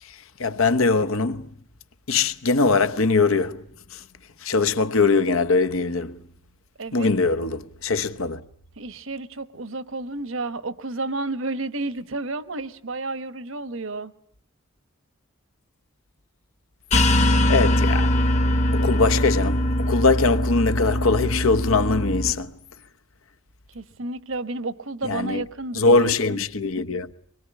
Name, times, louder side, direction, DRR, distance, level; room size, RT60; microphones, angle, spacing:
voice 1, 0.4-1.5 2.1-3.6 3.9-4.0 4.4-6.2 6.9-8.4 17.0-17.2 17.5-18.1 18.7-22.5 25.0-25.4 25.8-27.1, left 3 dB, 70° left, 1.0 m, -21 dB
voice 2, 6.8-7.1 8.8-14.1 23.7-26.4, right 2 dB, 65° right, 1.1 m, -31 dB
sound 1, 16.9-22.3, left 1 dB, 30° left, 1.1 m, -21 dB
24.5 x 21.5 x 9.9 m
head